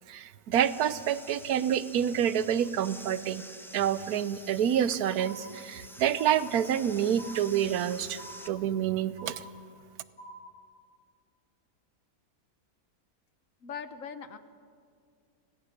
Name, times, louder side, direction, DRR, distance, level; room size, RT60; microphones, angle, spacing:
voice 1, 0.1-3.4 3.7-9.4, right 9 dB, 80° right, 15 dB, 1.2 m, -28 dB
sound 1, 0.5-8.5, equal, ahead, 0.7 m, -48 dB
sound 2, 5.2-5.8 6.2-6.8 7.2-7.8 8.2-8.8 9.2-9.8 10.2-10.8, right 1 dB, 90° left, 3.9 m, -48 dB
voice 2, 13.6-14.4, left 6 dB, 60° left, 11 dB, 1.3 m, -40 dB
25.0 x 17.5 x 6.6 m, 2.2 s
omnidirectional pair, 1.6 m